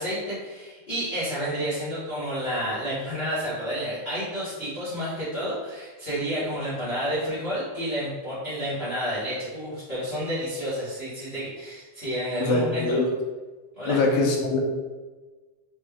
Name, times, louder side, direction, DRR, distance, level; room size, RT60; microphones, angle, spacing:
voice 1, 0.0-13.0 13.8-14.0, equal, 35° left, -11 dB, 1.0 m, -30 dB
voice 2, 12.4-13.1 13.9-14.6, left 2 dB, 75° left, 0 dB, 1.8 m, -23 dB
5.1 x 2.7 x 3.5 m, 1.3 s
omnidirectional pair, 3.6 m